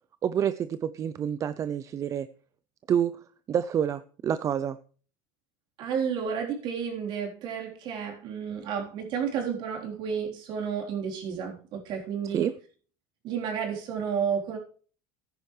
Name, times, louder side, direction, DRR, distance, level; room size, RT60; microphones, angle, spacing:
voice 1, 0.2-2.3 2.9-3.1 3.5-4.8 12.2-12.5, right 9 dB, 35° right, 0.5 m, -28 dB
voice 2, 5.8-12.5 13.2-14.6, right 7 dB, 55° right, 3.6 m, -31 dB
14.0 x 10.0 x 3.2 m
supercardioid pair, 115°, 10 cm